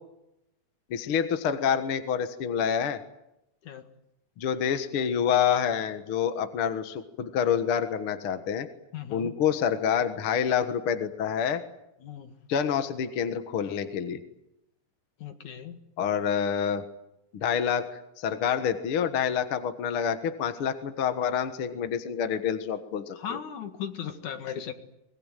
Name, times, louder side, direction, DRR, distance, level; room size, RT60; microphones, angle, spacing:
voice 1, 0.9-3.0 4.4-8.7 9.1-11.6 12.5-14.2 16.0-16.8 17.3-23.4, left 8 dB, 50° left, 8 dB, 2.0 m, -27 dB
voice 2, 8.9-9.3 12.0-12.3 15.2-15.8 23.1-24.7, left 8 dB, 70° left, 7 dB, 3.2 m, -37 dB
24.0 x 21.5 x 9.1 m, 0.86 s
omnidirectional pair, 3.6 m